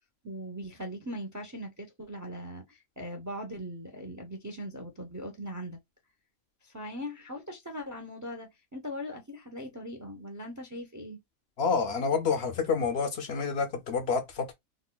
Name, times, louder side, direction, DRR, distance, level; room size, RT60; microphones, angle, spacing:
voice 1, 0.2-5.8 6.6-11.2, equal, 30° right, 0.3 m, -40 dB
voice 2, 11.6-14.5, left 5 dB, 65° left, 0.7 m, -28 dB
3.8 x 2.2 x 2.2 m
omnidirectional pair, 1.3 m